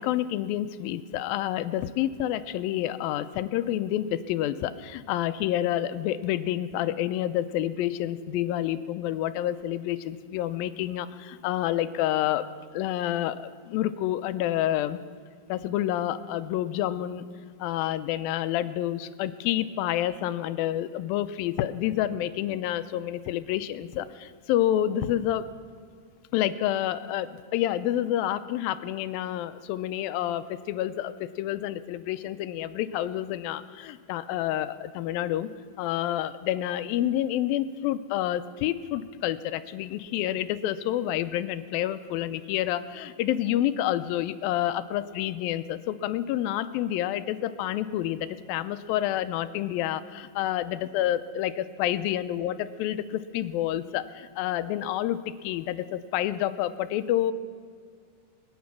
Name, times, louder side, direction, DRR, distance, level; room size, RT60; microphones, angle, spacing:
voice 1, 0.0-12.4 12.7-15.0 15.5-17.3 17.6-25.4 26.3-35.5 35.8-57.3, left 12 dB, 90° left, 12 dB, 2.4 m, -28 dB
25.0 x 9.4 x 6.0 m, 2.1 s
omnidirectional pair, 4.1 m